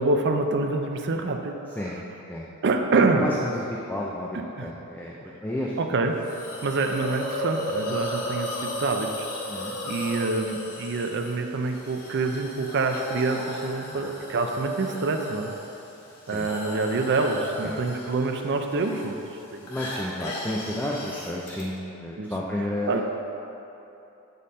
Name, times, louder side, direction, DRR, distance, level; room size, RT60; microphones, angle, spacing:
voice 1, 0.0-1.6 2.6-3.2 4.3-4.7 5.8-6.2 6.6-9.3 9.8-15.5 16.3-19.1 19.5-19.7 22.2-22.3 22.9-23.0, right 3 dB, 50° right, 5 dB, 0.5 m, -26 dB
voice 2, 3.2-5.7 9.5-9.7 16.3-16.5 17.6-17.8 19.7-23.0, left 1 dB, 10° left, -4 dB, 0.4 m, -32 dB
Hiss, 6.2-21.6, left 1 dB, 75° left, 1.3 m, -36 dB
7.5 x 5.3 x 4.2 m, 2.9 s
head